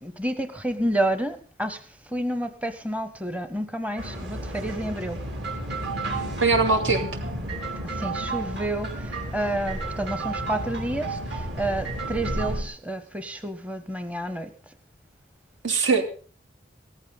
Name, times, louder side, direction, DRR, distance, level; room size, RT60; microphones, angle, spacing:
voice 1, 0.0-5.2 7.8-14.7, right 1 dB, 5° right, 10 dB, 0.7 m, -30 dB
sound 1, 4.0-12.6, right 2 dB, 60° right, 3.3 m, -31 dB
voice 2, 6.4-7.1 15.6-16.0, right 4 dB, 80° right, 4 dB, 2.8 m, -21 dB
17.5 x 14.0 x 4.0 m, 0.41 s
head